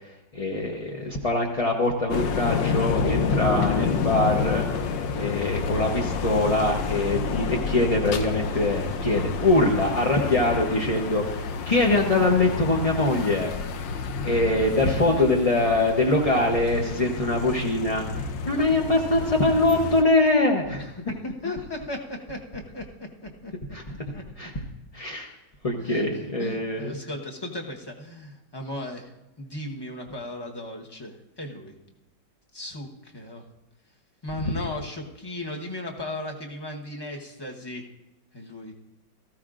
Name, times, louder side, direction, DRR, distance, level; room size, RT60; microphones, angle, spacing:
voice 1, 0.3-4.9 5.1-13.5 14.2-18.0 18.4-20.9 23.7-23.8 24.4-24.5 24.9-25.3 25.6-27.0 34.4-34.5, left 2 dB, 40° left, 0 dB, 0.5 m, -23 dB
sound 1, 2.1-20.0, left 5 dB, 80° left, 1.4 m, -29 dB
voice 2, 14.9-15.2 21.1-23.5 23.9-24.5 25.8-26.1 26.4-29.1 29.4-31.7 32.5-32.9 33.1-33.4 34.2-37.8 38.3-38.7, left 1 dB, 20° left, 1 dB, 0.8 m, -36 dB
18.0 x 14.5 x 2.5 m, 0.96 s
omnidirectional pair, 2.0 m